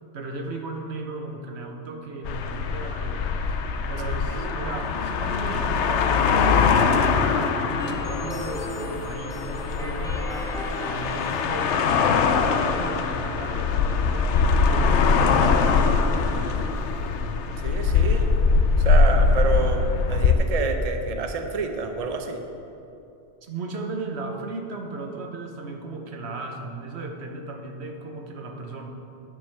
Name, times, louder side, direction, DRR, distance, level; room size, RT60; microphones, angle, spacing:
voice 1, 0.1-3.4 3.9-10.3 10.8-15.8 16.1-16.8 23.4-28.9, right 3 dB, 75° right, 3 dB, 1.2 m, -36 dB
sound 1, 2.2-20.3, left 5 dB, 85° left, 0.9 m, -22 dB
sound 2, 7.8-12.8, equal, 5° left, 0.8 m, -37 dB
voice 2, 17.6-18.3 18.8-22.4, right 4 dB, 40° right, 5 dB, 0.7 m, -28 dB
10.0 x 4.9 x 7.4 m, 2.7 s
omnidirectional pair, 1.1 m